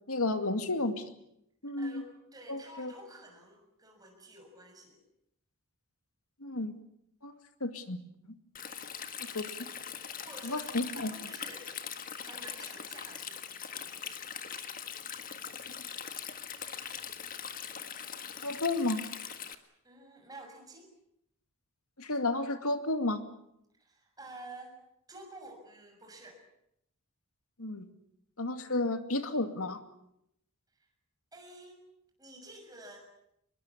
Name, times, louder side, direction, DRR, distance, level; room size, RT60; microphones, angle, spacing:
voice 1, 0.1-1.0 1.6-2.1 2.5-2.9 6.4-6.8 7.2-8.0 9.2-9.6 10.4-11.1 18.4-19.0 22.0-23.2 27.6-27.9 28.4-29.8, left 2 dB, 80° left, 8 dB, 2.4 m, -32 dB
voice 2, 1.8-5.0 10.2-10.7 10.9-11.7 12.2-14.3 19.8-20.9 23.8-24.8 25.1-26.4 30.8-30.9 31.3-31.8 32.2-33.1, right 1 dB, 15° right, 3 dB, 6.6 m, -50 dB
Stream, 8.5-19.5, left 8 dB, 40° left, 1.7 m, -41 dB
24.5 x 22.0 x 8.4 m, 0.78 s
head